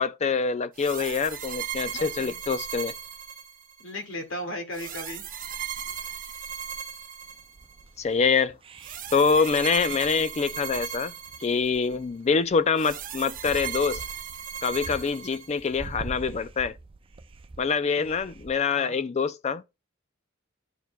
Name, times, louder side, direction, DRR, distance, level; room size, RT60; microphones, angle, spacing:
voice 1, 0.0-2.9 8.0-8.6 9.1-11.1 11.4-14.0 14.6-16.8 17.6-19.6, left 5 dB, 35° left, 0.4 m, -25 dB
sound 1, 0.8-3.9 4.7-7.8 8.8-12.0 12.8-15.9, right 9 dB, 45° right, 0.8 m, -37 dB
voice 2, 1.9-2.4 3.8-5.2 17.8-18.2 18.7-19.0, left 1 dB, 90° left, 2.2 m, -37 dB
sound 2, 7.2-18.5, right 3 dB, 25° right, 0.4 m, -45 dB
12.5 x 4.7 x 2.3 m
head